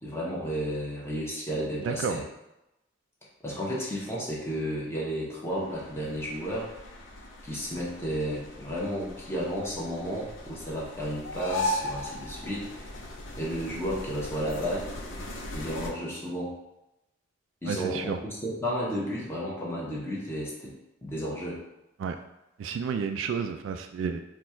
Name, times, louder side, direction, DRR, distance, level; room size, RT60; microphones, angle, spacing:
voice 1, 0.0-2.2 3.4-6.7 7.4-12.9 13.4-14.9 15.5-16.5 17.6-20.7 21.0-21.6, equal, 15° left, -6 dB, 1.0 m, -32 dB
voice 2, 1.8-2.2 17.7-18.2 22.0-22.2 22.6-24.2, right 6 dB, 80° right, 7 dB, 0.3 m, -31 dB
sound 1, 5.5-15.9, left 1 dB, 80° left, 0.7 m, -38 dB
4.2 x 2.4 x 4.4 m, 0.92 s
head